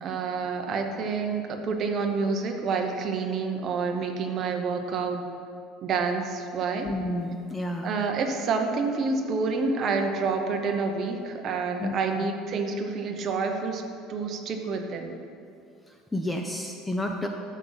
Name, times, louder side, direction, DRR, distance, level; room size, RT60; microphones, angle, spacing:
voice 1, 0.0-5.3 5.8-6.9 7.8-13.8 14.1-15.1, right 4 dB, 30° right, 4 dB, 0.8 m, -28 dB
voice 2, 6.8-7.9 11.8-12.0 16.1-17.3, left 1 dB, 5° left, 3 dB, 0.4 m, -30 dB
12.5 x 7.3 x 4.0 m, 2.5 s
cardioid pair, 175°, 0 cm